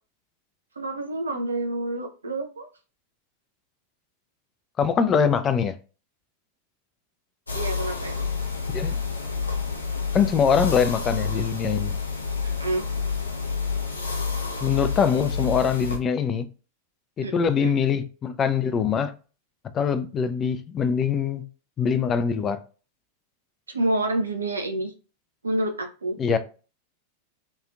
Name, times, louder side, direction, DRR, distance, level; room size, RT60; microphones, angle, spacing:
voice 1, 0.8-2.7 7.5-8.3 12.6-12.8 17.2-17.3 17.6-17.7 23.7-24.9 25.4-26.4, right 1 dB, 75° right, 0.5 m, -28 dB
voice 2, 4.8-5.7 8.7-9.0 10.1-12.0 14.6-16.5 17.2-19.1 19.7-21.4 21.8-22.6 26.2-26.4, left 6 dB, 25° left, 0.3 m, -23 dB
sound 1, 7.5-16.0, left 5 dB, 75° left, 0.5 m, -29 dB
2.9 x 2.4 x 2.4 m
figure-of-eight pair, 90°, 0 cm